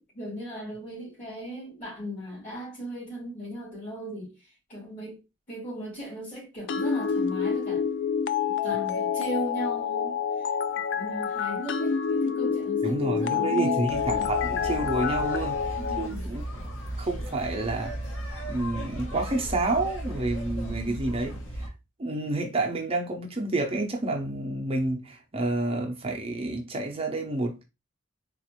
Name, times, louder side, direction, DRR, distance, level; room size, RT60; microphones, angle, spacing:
voice 1, 0.0-5.2 5.5-7.9 8.6-10.5 10.9-14.3 15.7-16.3 20.6-21.0, right 1 dB, 45° left, 2.4 m, -37 dB
sound 1, 6.7-16.1, left 7 dB, 65° left, 0.3 m, -28 dB
voice 2, 12.8-16.4 17.0-17.9 18.5-21.7 22.0-27.6, right 2 dB, 30° right, 0.6 m, -29 dB
sound 2, 13.9-21.7, right 1 dB, 85° left, 1.0 m, -36 dB
4.0 x 2.5 x 3.0 m
head